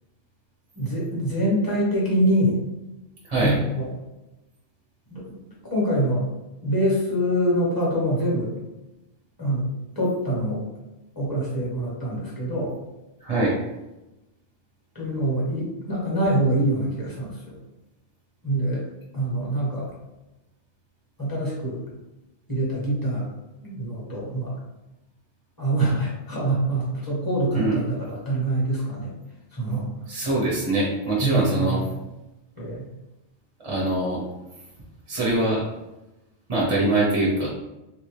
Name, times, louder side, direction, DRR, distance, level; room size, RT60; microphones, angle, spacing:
voice 1, 0.7-2.6 3.4-3.8 5.1-5.2 5.7-6.2 6.6-8.5 9.4-9.7 10.0-10.6 11.2-12.7 14.9-17.5 18.4-18.8 19.1-19.9 21.2-21.8 22.5-23.3 23.6-24.5 25.6-29.1 29.5-29.9 31.2-31.8 32.6-32.9, right 1 dB, 20° left, -5 dB, 1.1 m, -24 dB
voice 2, 13.2-13.6 27.5-27.8 30.1-31.8 33.6-34.2 35.1-35.6 36.5-37.5, right 2 dB, 30° right, -4 dB, 0.7 m, -23 dB
3.1 x 2.7 x 3.2 m, 0.98 s
omnidirectional pair, 1.2 m